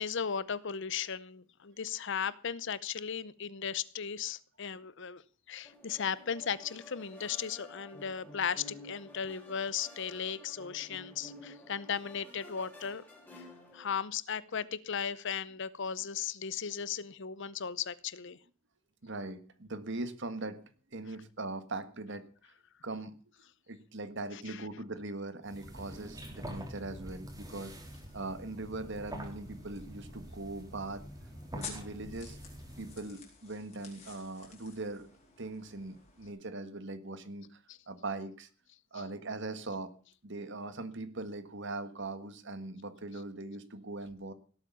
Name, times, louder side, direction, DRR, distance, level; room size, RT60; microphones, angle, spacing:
voice 1, 0.0-5.2 5.5-13.0 13.3-13.5 13.7-18.4 24.3-24.6 37.7-37.8, left 7 dB, 60° left, 19 dB, 0.8 m, -36 dB
sound 1, 5.6-13.9, left 1 dB, 10° left, 4.9 m, -52 dB
voice 2, 19.0-20.6 20.9-22.3 22.8-23.2 23.7-27.7 28.1-31.0 31.5-32.4 32.8-35.0 35.4-38.5 38.9-39.9 40.2-44.3, right 2 dB, 55° right, 12 dB, 1.6 m, -40 dB
sound 2, 25.4-33.1, equal, 15° right, 3.5 m, -46 dB
sound 3, 28.1-36.3, left 6 dB, 30° left, 5.8 m, -53 dB
17.5 x 8.5 x 7.0 m, 0.40 s
head